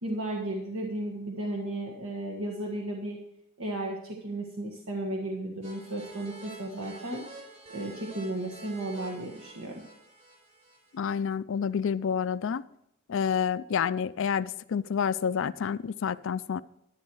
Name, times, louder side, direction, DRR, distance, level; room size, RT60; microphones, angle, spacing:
voice 1, 0.0-3.2 3.6-7.2 7.7-9.8, right 1 dB, 75° right, 1.6 m, -34 dB
sound 1, 5.6-11.0, right 2 dB, 30° right, 4.4 m, -48 dB
voice 2, 10.9-12.6 13.1-16.6, left 7 dB, 60° left, 0.4 m, -29 dB
11.0 x 10.5 x 4.7 m
head